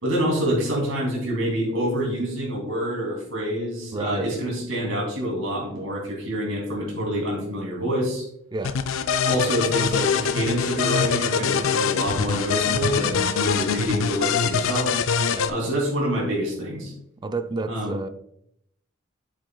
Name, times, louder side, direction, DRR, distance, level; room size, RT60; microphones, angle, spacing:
voice 1, 0.0-8.2 9.3-14.9 15.5-16.9 17.7-18.0, equal, 85° right, -2 dB, 2.9 m, -26 dB
voice 2, 3.9-4.3 8.5-8.8 15.3-15.5 17.2-18.1, right 3 dB, 20° right, 10 dB, 0.4 m, -30 dB
sound 1, 8.6-15.5, left 6 dB, 80° left, 0.4 m, -24 dB
7.7 x 7.6 x 2.3 m, 0.74 s
head